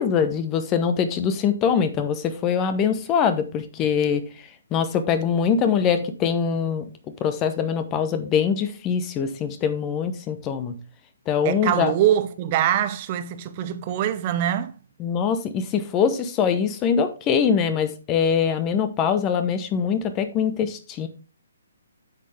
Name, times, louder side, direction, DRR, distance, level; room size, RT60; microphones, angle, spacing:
voice 1, 0.0-4.2 4.7-6.9 7.2-10.8 11.3-11.9 15.0-21.1, left 7 dB, 20° left, 1.0 m, -23 dB
voice 2, 11.4-14.7, right 11 dB, 35° right, 0.8 m, -23 dB
9.9 x 6.5 x 3.4 m
figure-of-eight pair, 135°, 0 cm